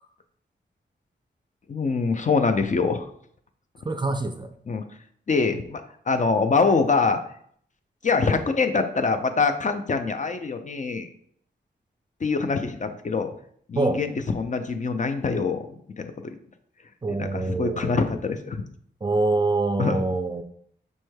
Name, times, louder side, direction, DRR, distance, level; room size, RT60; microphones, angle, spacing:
voice 1, 1.7-3.1 4.7-4.8 5.3-5.8 6.1-7.2 8.0-11.1 12.2-13.3 13.7-15.7 16.0-16.3 17.1-18.6 19.8-20.0, left 4 dB, 40° left, 7 dB, 0.4 m, -24 dB
voice 2, 3.9-4.5 13.8-14.0 17.0-18.2 19.0-20.4, right 2 dB, 25° right, 7 dB, 0.4 m, -25 dB
5.3 x 3.1 x 2.2 m, 0.64 s
cardioid pair, 60°, 20 cm